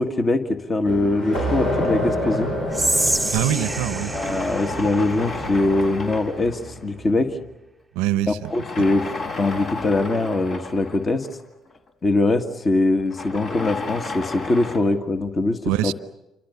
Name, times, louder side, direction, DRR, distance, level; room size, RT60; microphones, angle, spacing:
voice 1, 0.0-2.5 3.4-3.5 4.1-7.4 8.3-9.1 9.4-11.3 12.0-15.9, left 2 dB, 35° left, 1.7 m, -22 dB
sound 1, 0.8-7.2, equal, 80° left, 7.5 m, -29 dB
sound 2, 2.2-3.5 4.0-7.1 8.4-11.9 13.0-14.8, left 3 dB, 55° left, 4.1 m, -33 dB
Whispering, 2.7-5.9, right 2 dB, 10° right, 0.9 m, -27 dB
voice 2, 3.3-4.1 7.9-8.5 15.6-15.9, right 14 dB, 70° right, 0.8 m, -23 dB
28.0 x 25.0 x 7.0 m
hypercardioid pair, 50°, 0 cm